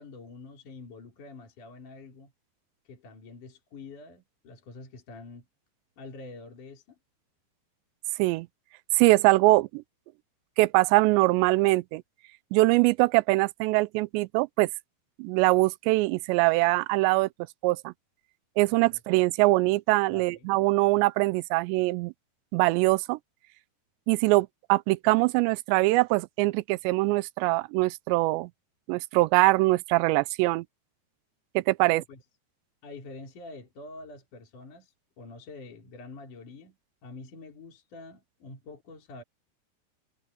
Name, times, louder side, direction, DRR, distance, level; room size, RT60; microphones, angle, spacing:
voice 1, 0.0-2.3 2.9-5.5 6.0-7.0 18.9-19.0 20.1-20.5 31.8-32.2 32.8-36.8 37.0-39.2, left 3 dB, 45° left, 5.3 m, -46 dB
voice 2, 8.9-9.8 10.6-12.0 12.5-14.7 15.2-17.3 17.6-17.9 18.6-22.1 22.5-23.2 24.1-28.5 28.9-30.7 31.6-32.0, right 22 dB, 85° right, 2.8 m, -23 dB
omnidirectional pair, 5.0 m